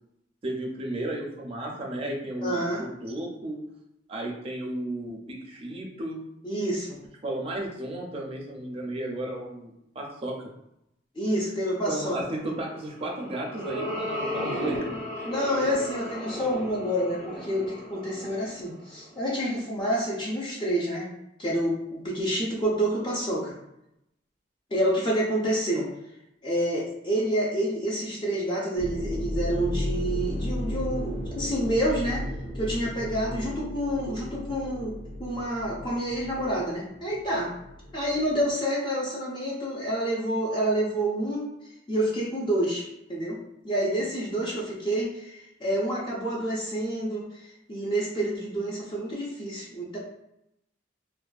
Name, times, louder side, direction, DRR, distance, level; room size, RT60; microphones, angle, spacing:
voice 1, 0.4-3.6 4.1-6.2 7.2-10.5 11.9-14.8 15.2-15.3, right 1 dB, 30° right, -1 dB, 0.4 m, -34 dB
voice 2, 2.4-2.8 6.4-7.0 11.2-12.2 15.2-21.1 21.4-23.5 24.7-25.9 26.4-32.3 32.5-37.5 37.9-41.5 41.9-43.4 43.6-50.0, right 1 dB, 25° left, -5 dB, 0.4 m, -28 dB
sound 1, 12.9-19.4, left 1 dB, 50° left, 1.3 m, -35 dB
sound 2, 28.8-38.5, equal, 85° left, 0.5 m, -34 dB
2.4 x 2.2 x 2.3 m, 0.83 s
head